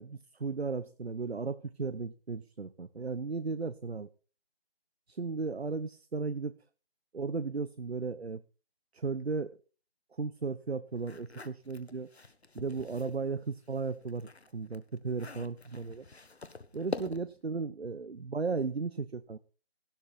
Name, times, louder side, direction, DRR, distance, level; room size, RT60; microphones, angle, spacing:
voice 1, 0.0-4.1 5.1-6.5 7.1-8.4 8.9-9.6 10.2-12.1 12.5-16.0 16.7-19.4, right 4 dB, 75° right, 13 dB, 1.0 m, -35 dB
sound 1, 11.0-13.2 13.7-17.5, left 3 dB, 75° left, 1.4 m, -45 dB
16.0 x 12.0 x 4.2 m, 0.37 s
figure-of-eight pair, 160°, 32 cm